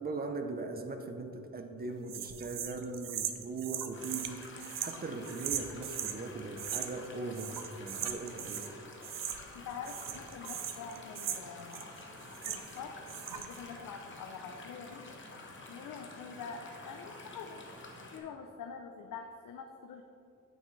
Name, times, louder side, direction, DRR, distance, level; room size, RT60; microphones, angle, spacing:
voice 1, 0.0-8.7, right 3 dB, 30° right, 5 dB, 0.6 m, -40 dB
sound 1, 2.1-6.2 6.6-7.1 7.3-8.7 9.0-9.6 9.8-12.8 13.1-13.6, right 9 dB, 75° right, 0.7 m, -39 dB
sound 2, 3.9-18.2, left 3 dB, 35° left, 1.0 m, -50 dB
voice 2, 9.5-11.9 12.5-12.9 13.3-15.1 15.7-17.6 18.1-20.0, left 6 dB, 75° left, 3 dB, 0.6 m, -45 dB
sound 3, 9.6-18.2, right 1 dB, 45° right, 1.9 m, -56 dB
9.4 x 9.0 x 3.2 m, 2.7 s
wide cardioid pair, 165°, 33 cm